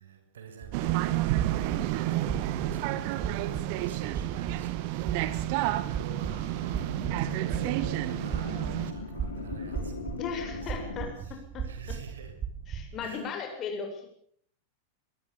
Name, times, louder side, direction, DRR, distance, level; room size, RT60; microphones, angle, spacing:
voice 1, 0.0-1.4 2.1-12.3 13.0-13.3, right 6 dB, 65° right, 6.5 m, -48 dB
sound 1, 0.6-13.1, right 7 dB, 25° right, 5.5 m, -38 dB
sound 2, 0.7-8.9, right 15 dB, 45° right, 1.8 m, -30 dB
sound 3, 6.3-11.1, left 5 dB, 70° left, 5.8 m, -41 dB
voice 2, 10.2-11.7 12.7-14.1, left 5 dB, 30° left, 7.7 m, -37 dB
24.5 x 22.0 x 7.2 m
figure-of-eight pair, 90°, 0 cm